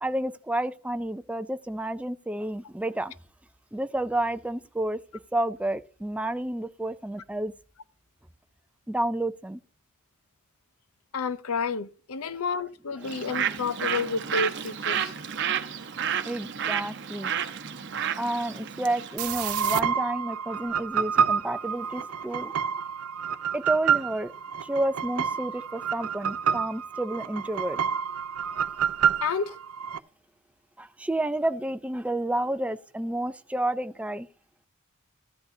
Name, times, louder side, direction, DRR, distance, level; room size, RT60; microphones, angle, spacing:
voice 1, 0.0-3.2 3.7-5.0 5.3-7.5 8.9-9.6 12.3-12.4 13.0-13.4 16.2-17.3 18.2-22.8 23.5-24.3 24.6-27.8 30.8-34.3, right 1 dB, 5° right, 0.4 m, -30 dB
voice 2, 11.1-15.1 29.2-29.5, left 4 dB, 75° left, 0.6 m, -30 dB
Bird, 13.0-19.2, right 8 dB, 55° right, 0.8 m, -31 dB
sound 1, 19.2-30.0, right 7 dB, 85° right, 0.5 m, -28 dB
14.0 x 10.5 x 2.7 m
head